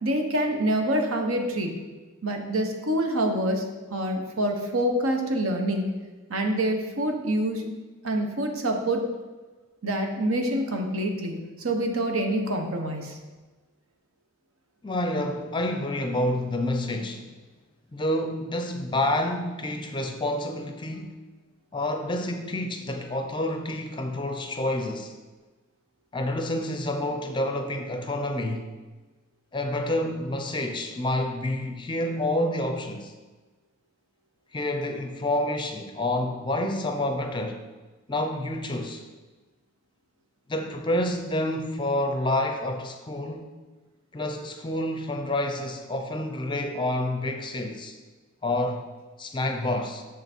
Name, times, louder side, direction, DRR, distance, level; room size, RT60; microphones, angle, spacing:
voice 1, 0.0-1.7 2.2-3.6 3.9-5.9 6.3-7.7 8.0-9.0 9.8-13.2, right 1 dB, 75° right, 1.0 m, -26 dB
voice 2, 14.8-17.3 17.9-21.2 21.7-25.1 26.1-28.7 29.5-33.1 34.5-37.6 38.1-39.0 40.5-43.5 44.1-48.0 48.4-48.9 49.2-50.0, left 1 dB, 20° left, 0.5 m, -28 dB
6.7 x 5.7 x 4.4 m
head